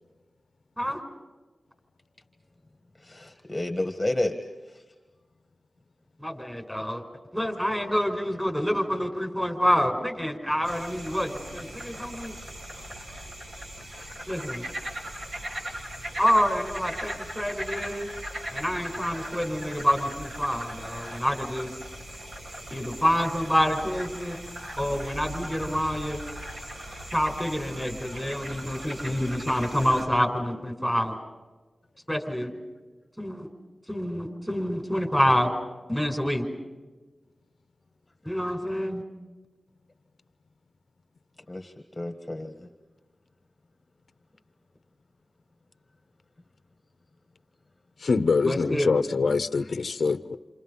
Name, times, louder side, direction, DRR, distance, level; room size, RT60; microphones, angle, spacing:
voice 1, 3.1-4.3 41.5-42.5, left 1 dB, 15° left, 5 dB, 1.7 m, -30 dB
voice 2, 6.2-7.0 7.3-12.4 14.3-14.6 16.2-18.1 18.5-21.7 22.7-24.4 24.8-26.2 27.1-31.2 32.1-32.5 33.2-33.5 33.9-35.5 35.9-36.5 38.3-39.0 48.4-48.9, equal, 5° right, 3 dB, 5.3 m, -27 dB
sound 1, 10.6-30.1, right 1 dB, 60° right, 7.5 m, -39 dB
voice 3, 48.0-50.4, left 4 dB, 70° left, 12 dB, 0.8 m, -24 dB
29.0 x 28.5 x 5.5 m, 1.3 s
wide cardioid pair, 90°, 0 cm